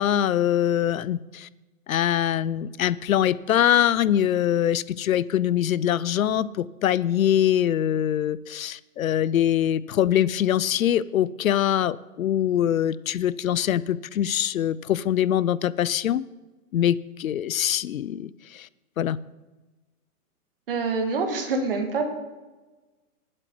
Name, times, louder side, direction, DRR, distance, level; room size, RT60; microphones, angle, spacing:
voice 1, 0.0-1.5 1.9-16.2 16.7-18.7 19.0-19.2, left 11 dB, 65° left, 19 dB, 0.6 m, -23 dB
voice 2, 20.7-22.0, right 4 dB, 40° right, 5 dB, 1.8 m, -26 dB
19.0 x 7.6 x 4.7 m, 1.2 s
hypercardioid pair, 180°, 44 cm